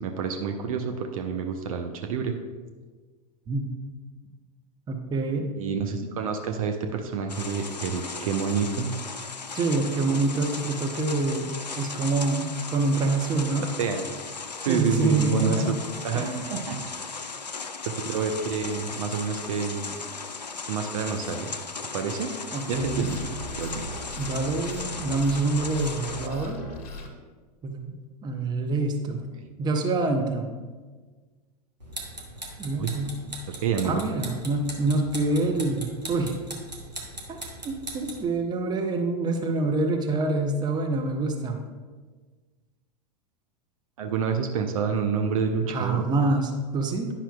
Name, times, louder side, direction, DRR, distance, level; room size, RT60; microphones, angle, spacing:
voice 1, 0.0-2.4 5.6-8.9 13.8-14.1 14.6-15.6 16.0-16.8 17.9-20.0 20.7-21.6 21.9-22.4 22.7-23.9 29.4-29.5 32.8-32.9 33.6-34.0 44.0-46.0, right 6 dB, 55° right, 5 dB, 0.6 m, -28 dB
voice 2, 4.9-5.5 9.5-11.5 11.8-13.6 14.7-15.8 16.1-16.6 22.5-23.1 24.2-26.6 27.6-27.9 28.2-29.3 29.6-30.5 32.6-33.1 33.8-36.4 37.3-37.4 37.6-41.6 45.7-47.1, right 3 dB, 20° right, 3 dB, 0.8 m, -26 dB
sound 1, 7.3-26.3, left 4 dB, 85° left, 0.4 m, -37 dB
sound 2, 22.7-27.1, equal, 60° left, 1.3 m, -38 dB
sound 3, 31.8-38.3, right 1 dB, 90° right, 1.1 m, -40 dB
10.0 x 5.7 x 2.3 m, 1.4 s
figure-of-eight pair, 90°, 21 cm